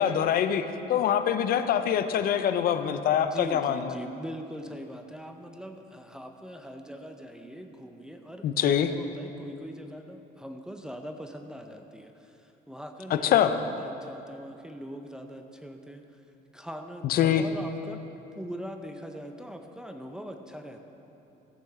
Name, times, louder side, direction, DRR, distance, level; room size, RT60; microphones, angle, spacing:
voice 1, 0.0-3.9 8.4-8.9 13.1-13.5 17.0-17.4, left 9 dB, 60° left, 9 dB, 0.6 m, -24 dB
voice 2, 3.1-16.2 16.5-18.0 18.4-20.8, equal, 5° right, 4 dB, 0.6 m, -41 dB
14.5 x 8.7 x 3.6 m, 2.9 s
cardioid pair, 110°, 17 cm